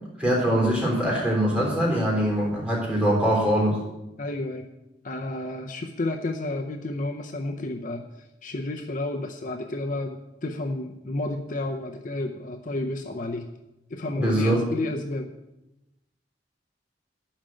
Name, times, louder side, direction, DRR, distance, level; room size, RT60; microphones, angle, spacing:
voice 1, 0.2-3.8 14.2-14.6, equal, 5° right, -4 dB, 3.7 m, -23 dB
voice 2, 4.2-4.7 5.0-8.0 8.4-13.5 13.9-15.3, left 2 dB, 45° left, 5 dB, 0.6 m, -31 dB
11.5 x 5.1 x 7.7 m, 0.95 s
head